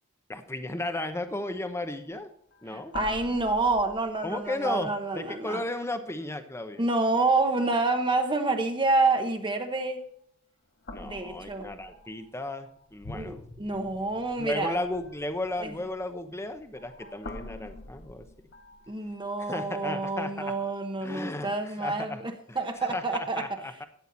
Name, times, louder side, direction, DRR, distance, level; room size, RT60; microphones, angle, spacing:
voice 1, 0.3-2.3 2.6-2.9 4.2-6.8 10.9-13.4 14.4-18.2 19.4-20.5 21.0-22.2 22.5-23.8, left 2 dB, 15° left, 8 dB, 1.0 m, -34 dB
sound 1, 1.6-1.8 2.1-2.3 2.5-4.9 5.4-5.9 6.7-7.0 7.4-8.2 9.8-10.2 10.8-19.4, left 2 dB, 50° left, 1.3 m, -47 dB
voice 2, 2.7-5.6 6.8-10.0 11.0-11.7 13.1-14.8 15.6-15.7 18.9-23.5, right 3 dB, 25° right, 5 dB, 1.1 m, -28 dB
13.0 x 9.2 x 4.0 m, 0.66 s
head